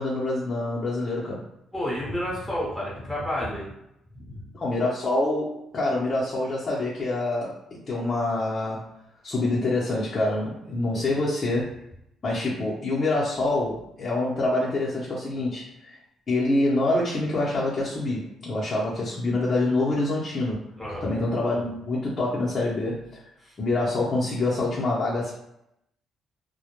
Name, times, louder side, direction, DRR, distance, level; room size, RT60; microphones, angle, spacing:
voice 1, 0.0-1.5 4.5-8.9 9.2-11.7 12.2-16.0 16.3-20.7 21.0-23.2 23.6-25.3, left 2 dB, 40° left, -6 dB, 0.6 m, -26 dB
voice 2, 1.7-3.7 4.2-4.4 10.9-11.1 20.8-21.0, left 1 dB, 5° right, -6 dB, 0.9 m, -30 dB
2.1 x 2.1 x 2.9 m, 0.81 s
cardioid pair, 80°, 0 cm